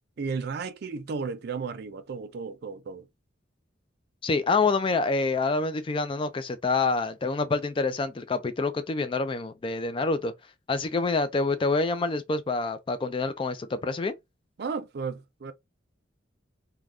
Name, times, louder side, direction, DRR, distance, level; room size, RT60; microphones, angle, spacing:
voice 1, 0.2-3.1 14.6-15.5, right 5 dB, 55° right, 0.4 m, -34 dB
voice 2, 4.2-10.3 10.7-14.1, left 3 dB, 25° left, 0.3 m, -27 dB
3.3 x 2.2 x 2.4 m
head